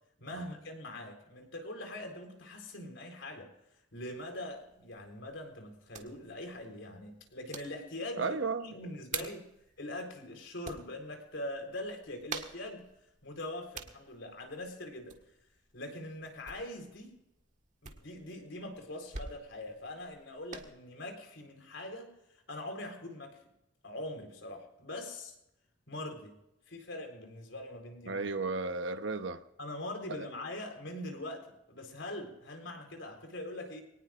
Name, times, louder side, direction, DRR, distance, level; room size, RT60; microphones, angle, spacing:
voice 1, 0.2-3.5 3.9-8.4 8.6-9.4 9.8-12.8 13.2-15.2 15.7-17.1 17.8-22.1 22.5-23.4 23.8-25.3 25.9-26.3 26.7-28.2 29.6-33.8, left 1 dB, 75° left, 4.0 m, -42 dB
sound 1, 3.9-20.7, right 5 dB, 40° right, 1.6 m, -49 dB
voice 2, 8.2-8.7 9.2-9.3 28.1-29.4 30.2-30.3, right 3 dB, 65° right, 1.0 m, -34 dB
23.0 x 18.5 x 2.5 m
head